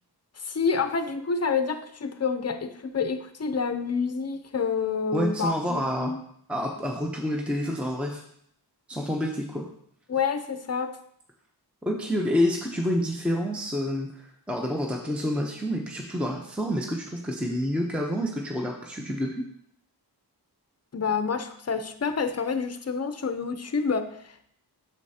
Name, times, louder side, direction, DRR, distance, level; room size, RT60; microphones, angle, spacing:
voice 1, 0.4-6.2 10.1-11.0 20.9-24.5, left 5 dB, 40° left, 9 dB, 0.6 m, -28 dB
voice 2, 5.1-6.1 6.5-8.2 8.9-9.7 11.8-19.5, equal, 5° right, 1 dB, 0.7 m, -28 dB
8.1 x 6.6 x 2.8 m, 0.69 s
wide cardioid pair, 95°, 40 cm